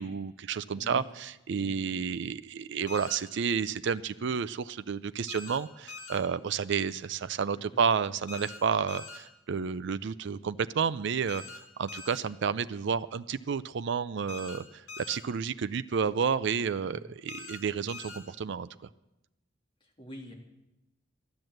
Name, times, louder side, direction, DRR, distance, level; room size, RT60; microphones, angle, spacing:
voice 1, 0.0-18.9, right 6 dB, 65° right, 13 dB, 0.4 m, -31 dB
voice 2, 0.7-1.1 1.5-2.1 7.5-7.8 15.9-16.1 16.8-17.1 19.8-20.3, equal, 25° left, 0 dB, 2.5 m, -47 dB
sound 1, 2.9-3.2 5.3-5.6 5.9-6.2 8.3-8.6 8.9-9.2 11.3-11.6 11.9-12.2 14.3-14.6 14.9-15.2 17.3-17.6 17.9-18.2, left 4 dB, 75° left, 3.8 m, -43 dB
13.5 x 10.5 x 7.8 m, 0.93 s
head